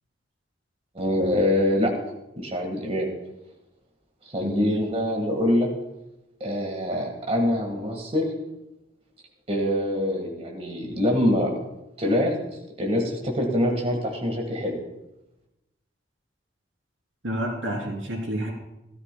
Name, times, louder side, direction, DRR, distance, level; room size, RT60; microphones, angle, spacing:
voice 1, 0.9-1.9 2.4-3.1 4.3-5.7 6.4-8.3 9.5-11.5 12.0-12.3 12.8-14.8, left 1 dB, 35° right, 0 dB, 1.8 m, -24 dB
voice 2, 4.4-4.8 17.2-18.5, equal, 90° right, -1 dB, 3.4 m, -29 dB
17.0 x 13.0 x 2.3 m, 0.93 s
head